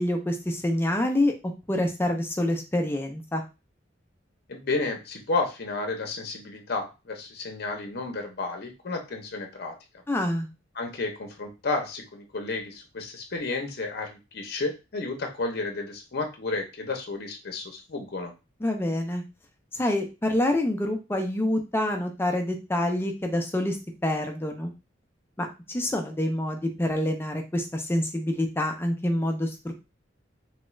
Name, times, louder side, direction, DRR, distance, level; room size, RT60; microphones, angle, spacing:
voice 1, 0.0-1.3 1.7-3.4 10.1-10.5 18.6-19.2 19.7-23.8 24.0-24.7 25.4-29.7, left 1 dB, 10° left, 4 dB, 0.4 m, -27 dB
voice 2, 4.5-9.7 10.7-18.3, left 3 dB, 55° left, 4 dB, 0.7 m, -32 dB
3.1 x 2.3 x 3.1 m, 0.28 s
head